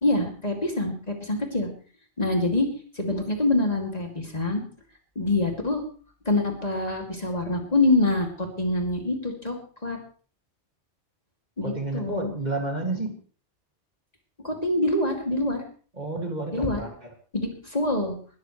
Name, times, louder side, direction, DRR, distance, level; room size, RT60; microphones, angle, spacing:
voice 1, 0.0-1.7 2.2-2.7 3.0-4.6 5.2-5.8 6.3-9.6 9.8-10.0 11.6-12.3 14.4-15.6 16.5-16.8 17.3-18.2, left 2 dB, 35° left, 2 dB, 2.7 m, -25 dB
voice 2, 11.6-13.2 16.0-17.1, right 2 dB, 35° right, 2 dB, 2.4 m, -30 dB
20.5 x 13.0 x 3.2 m, 0.41 s
omnidirectional pair, 1.2 m